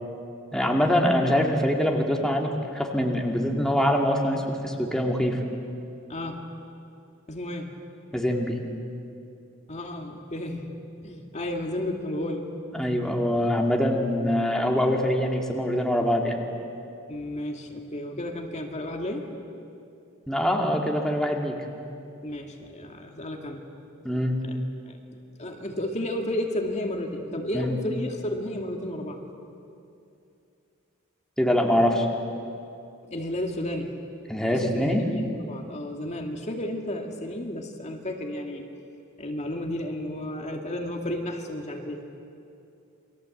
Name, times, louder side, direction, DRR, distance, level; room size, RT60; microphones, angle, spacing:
voice 1, 0.5-5.4 8.1-8.6 12.7-16.4 20.3-21.6 24.0-24.4 27.5-27.7 31.4-32.1 34.3-35.0, equal, 5° left, 0 dB, 2.2 m, -24 dB
voice 2, 6.1-6.4 7.3-7.7 9.7-10.7 11.0-12.5 17.1-19.3 22.2-23.7 24.4-24.6 24.9-25.0 25.4-29.2 33.1-34.0 34.5-38.6 39.2-42.0, left 1 dB, 35° left, 2 dB, 2.2 m, -32 dB
29.0 x 23.0 x 7.9 m, 2.6 s
head